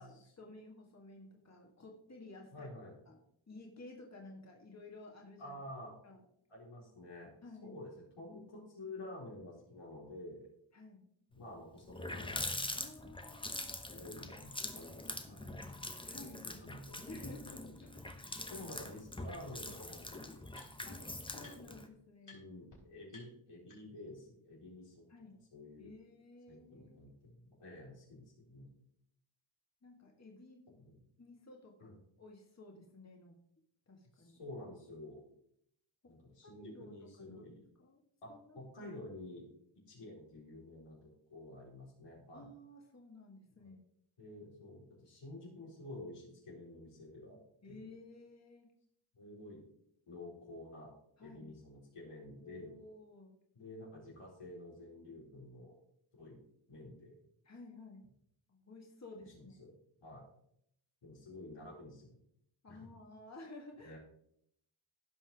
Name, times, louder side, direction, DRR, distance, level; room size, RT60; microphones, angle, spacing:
voice 1, 0.0-2.7 3.1-3.2 3.5-5.6 6.0-6.2 7.4-7.8 10.7-11.1 12.8-13.7 16.1-16.6 17.1-18.7 20.8-21.0 21.3-22.5 25.1-25.4 25.8-27.0 29.8-30.7 31.2-33.4 33.9-34.4 36.0-36.1 36.4-38.0 38.3-38.9 42.3-43.8 47.6-48.7 51.2-51.5 52.4-53.3 57.4-58.0 58.5-59.6 62.6-64.0, left 2 dB, 30° left, 1 dB, 1.7 m, -54 dB
voice 2, 2.5-2.9 5.4-5.9 6.5-7.3 7.6-7.9 8.2-10.5 11.3-12.4 13.9-15.6 16.1-17.3 17.6-17.7 18.5-20.4 20.8-21.1 21.3-21.8 22.3-25.0 25.5-25.9 26.5-28.7 30.7-31.0 31.8-31.9 34.1-35.2 36.0-37.6 38.2-39.5 39.9-42.5 43.6-43.7 44.2-47.4 47.7-47.9 49.1-49.6 50.1-50.9 51.2-52.7 53.5-55.7 56.2-57.2 59.3-59.7 60.0-60.3 61.0-62.2 62.7-62.8 63.8-64.0, left 1 dB, 90° left, -5 dB, 4.3 m, -50 dB
Water tap faucet, 11.4-11.5 11.8-21.9, left 1 dB, 10° left, 0.9 m, -44 dB
sound 1, 17.0-17.1 17.8-17.9 19.2-19.3 19.5-21.0 21.4-21.8 22.2-22.4 22.7-22.8 23.1-24.1, left 3 dB, 60° left, 4.3 m, -60 dB
15.5 x 5.6 x 3.5 m, 0.71 s
wide cardioid pair, 75°, 50 cm